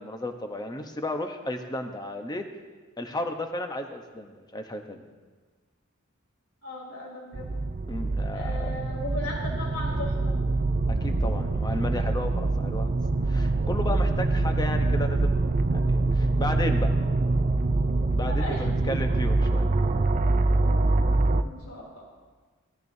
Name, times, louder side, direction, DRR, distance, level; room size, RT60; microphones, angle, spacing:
voice 1, 0.0-2.5 3.0-5.0 7.9-8.8 10.9-13.0 13.3-16.9 18.1-19.7, left 1 dB, 20° left, 5 dB, 0.9 m, -34 dB
voice 2, 6.6-7.5 8.3-10.4 18.3-19.0 21.4-22.1, left 1 dB, 75° left, -2 dB, 3.6 m, -37 dB
sound 1, 7.3-21.4, right 2 dB, 35° right, 0.5 m, -25 dB
17.5 x 13.5 x 2.7 m, 1.4 s
head